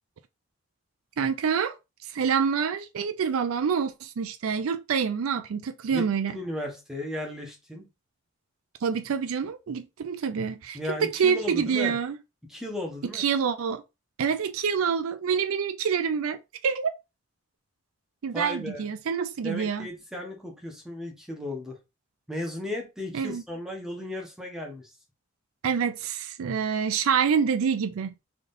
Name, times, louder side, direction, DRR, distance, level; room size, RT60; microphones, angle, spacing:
voice 1, 1.2-1.7 2.1-6.3 8.8-12.2 13.1-13.8 14.2-16.9 18.2-19.9 23.1-23.4 25.6-28.1, right 6 dB, 80° right, 0.4 m, -27 dB
voice 2, 5.8-7.9 10.7-12.0 12.5-13.2 18.3-18.9 19.4-21.8 22.3-24.9, left 1 dB, ahead, 1.1 m, -35 dB
3.8 x 3.5 x 2.6 m
head